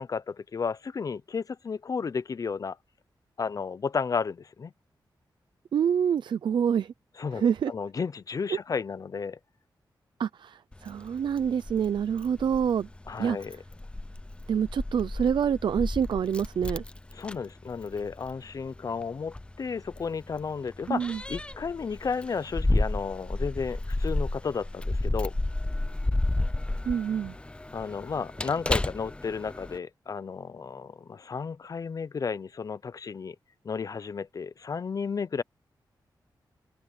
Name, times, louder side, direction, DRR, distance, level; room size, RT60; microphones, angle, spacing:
voice 1, 0.0-2.8 3.4-4.7 7.2-9.4 13.1-13.6 17.1-25.3 27.7-33.4 33.6-35.4, left 5 dB, 45° left, 0.7 m, -33 dB
voice 2, 5.7-6.9 7.3-7.7 8.5-8.6 10.2-12.9 13.2-13.4 14.5-16.8 20.9-21.2 26.9-27.4, right 8 dB, 80° right, 0.6 m, -26 dB
Keys jangling, 10.7-29.8, left 2 dB, 15° left, 0.6 m, -32 dB
open air
wide cardioid pair, 105°, 8 cm